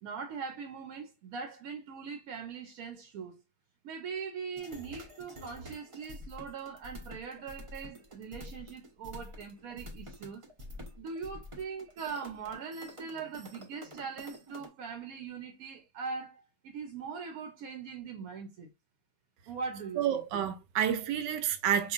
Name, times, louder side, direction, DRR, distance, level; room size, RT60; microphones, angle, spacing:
voice 1, 0.0-3.4 3.8-10.4 11.0-18.7 19.5-20.2, right 5 dB, 70° right, 1.0 m, -41 dB
sound 1, 4.6-14.7, left 1 dB, 40° right, 0.4 m, -48 dB
voice 2, 20.0-21.9, right 9 dB, 90° right, 1.2 m, -29 dB
4.8 x 2.5 x 2.4 m
omnidirectional pair, 1.8 m